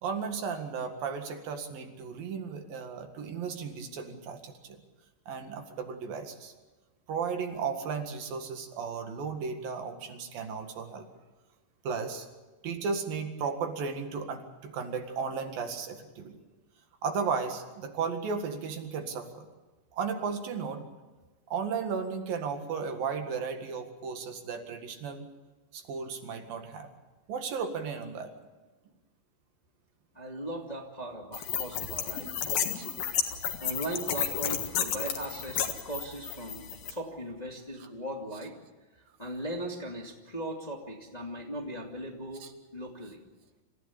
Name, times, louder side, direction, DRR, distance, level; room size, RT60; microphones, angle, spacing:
voice 1, 0.0-4.8 5.3-6.5 7.1-11.1 11.9-12.3 12.6-16.4 17.0-19.5 19.9-20.8 21.5-25.3 25.7-26.9 27.3-28.3 32.8-32.9 37.8-37.9 42.4-42.5, right 5 dB, 75° right, 6 dB, 3.7 m, -35 dB
voice 2, 30.1-32.5 33.6-36.6 36.9-38.6 38.9-42.4 42.7-43.2, right 1 dB, 15° left, 1 dB, 1.9 m, -38 dB
sound 1, 31.3-36.9, left 8 dB, 90° left, 3.6 m, -32 dB
27.0 x 15.5 x 8.5 m, 1.2 s
omnidirectional pair, 4.1 m